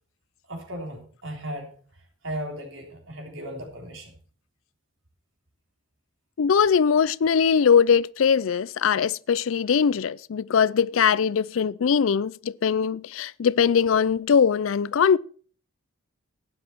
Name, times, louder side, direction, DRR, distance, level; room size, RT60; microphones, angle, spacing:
voice 1, 0.5-4.2, equal, 70° right, 3.6 m, -36 dB
voice 2, 6.4-15.2, left 6 dB, 80° left, 0.4 m, -21 dB
12.0 x 10.0 x 4.5 m
head